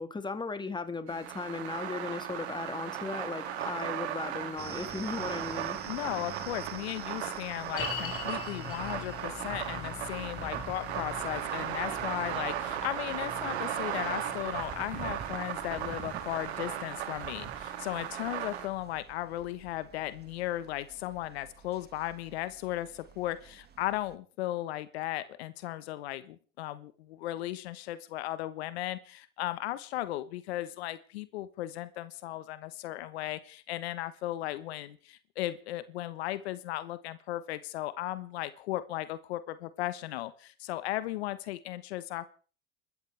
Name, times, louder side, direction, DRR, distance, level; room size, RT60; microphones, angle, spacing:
voice 1, 0.0-5.8, left 4 dB, 15° left, 10 dB, 2.0 m, -36 dB
sound 1, 1.1-18.7, right 10 dB, 90° right, 2.5 m, -37 dB
sound 2, 4.6-24.1, right 8 dB, 30° right, 1.7 m, -49 dB
voice 2, 5.9-42.3, left 15 dB, 85° left, 14 dB, 1.2 m, -36 dB
sound 3, 7.8-19.0 19.3-19.4 20.0-20.1, left 9 dB, 45° left, 4.5 m, -45 dB
30.0 x 13.5 x 3.4 m, 0.40 s
supercardioid pair, 95°, 31 cm